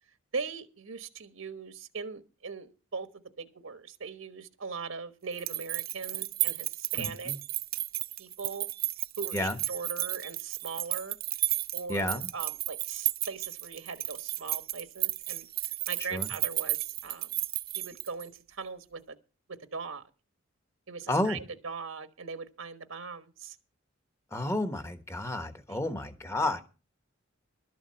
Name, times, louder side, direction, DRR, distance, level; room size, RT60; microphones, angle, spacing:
voice 1, 0.3-3.1 3.4-7.3 8.2-8.7 9.2-11.2 11.7-15.5 15.9-17.3 17.7-19.2 19.5-20.0 20.9-23.6 25.7-25.8, right 5 dB, 75° right, 9 dB, 1.3 m, -40 dB
sound 1, 5.3-18.4, right 15 dB, 45° right, 0.6 m, -33 dB
voice 2, 7.0-7.4 9.3-9.6 11.9-12.3 16.1-16.3 21.1-21.4 24.3-26.6, left 1 dB, 15° left, 9 dB, 1.2 m, -31 dB
12.5 x 7.3 x 7.6 m, 0.33 s
head